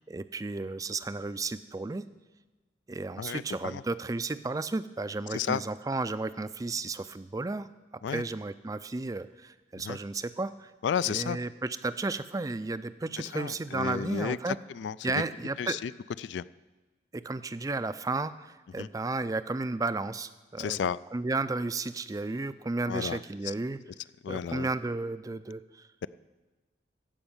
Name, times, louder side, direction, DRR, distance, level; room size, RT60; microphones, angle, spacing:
voice 1, 0.0-2.0 2.9-7.7 8.1-10.7 11.0-14.6 15.0-15.8 17.1-20.8 21.1-23.8 24.3-25.9, right 3 dB, 20° right, 14 dB, 0.4 m, -33 dB
voice 2, 3.2-3.8 5.3-5.6 8.0-8.2 9.8-10.0 10.8-11.4 13.2-15.2 15.6-15.9 16.2-16.5 18.8-18.9 20.6-21.0 22.9-23.5 24.2-24.7, left 7 dB, 85° left, 17 dB, 0.3 m, -33 dB
15.0 x 5.4 x 8.8 m, 1.2 s
head